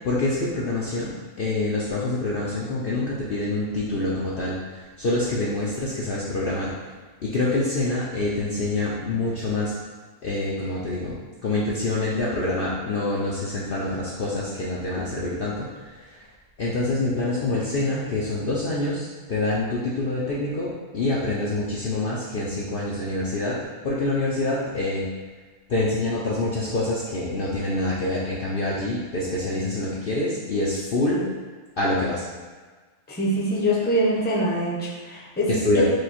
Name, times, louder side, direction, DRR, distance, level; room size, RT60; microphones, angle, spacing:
voice 1, 0.0-6.7 7.2-9.7 10.2-16.2 16.6-23.6 23.8-25.1 25.7-31.3 31.8-32.2 35.5-35.8, left 2 dB, 55° left, -6 dB, 0.7 m, -26 dB
voice 2, 33.1-35.8, equal, 10° left, -6 dB, 0.7 m, -24 dB
4.9 x 2.3 x 4.2 m, 1.4 s
omnidirectional pair, 1.4 m